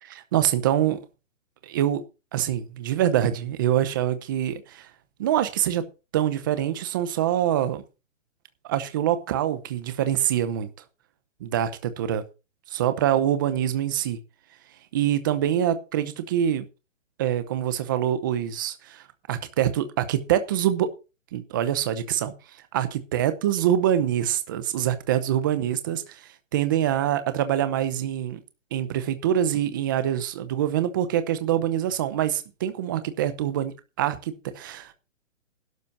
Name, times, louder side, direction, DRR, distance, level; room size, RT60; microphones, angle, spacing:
voice 1, 0.0-1.0 1.6-2.0 2.3-4.9 5.2-5.8 6.1-7.8 8.7-10.7 11.4-12.2 12.7-14.2 14.9-16.7 17.2-19.0 19.3-20.9 21.3-22.3 22.7-22.9 23.1-28.4 28.7-34.9, right 11 dB, 15° right, 0.7 m, -25 dB
12.0 x 5.4 x 8.3 m
hypercardioid pair, 165°, 38 cm